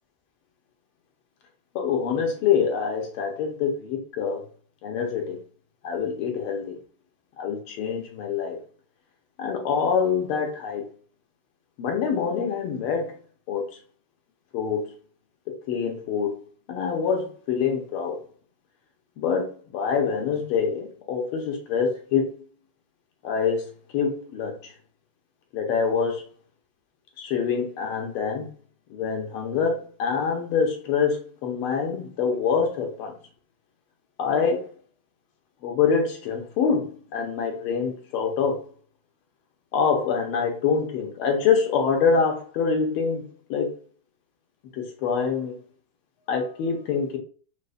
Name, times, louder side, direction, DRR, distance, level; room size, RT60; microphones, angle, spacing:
voice 1, 1.7-4.4 4.8-5.4 5.8-6.8 7.4-8.6 9.4-10.8 11.8-13.1 13.5-13.7 14.5-14.9 15.5-16.4 16.7-18.2 19.2-22.3 23.2-24.7 25.5-26.2 27.2-28.5 28.9-33.1 34.2-34.7 35.6-38.6 39.7-43.7 44.7-45.6 46.3-47.2, left 6 dB, 85° left, 3 dB, 1.6 m, -25 dB
5.1 x 2.1 x 2.4 m, 0.41 s
omnidirectional pair, 2.3 m